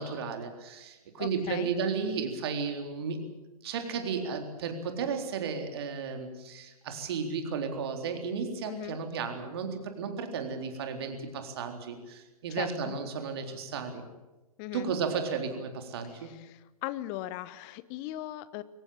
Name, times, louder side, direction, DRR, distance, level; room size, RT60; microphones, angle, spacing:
voice 1, 0.0-3.3 3.6-14.0 14.7-16.4, right 5 dB, 40° right, 6 dB, 3.9 m, -34 dB
voice 2, 1.2-1.7 8.7-9.0 12.5-13.0 14.6-14.9 16.2-18.6, left 15 dB, 25° left, 16 dB, 1.1 m, -39 dB
23.0 x 18.0 x 8.8 m, 1.1 s
figure-of-eight pair, 125°, 19 cm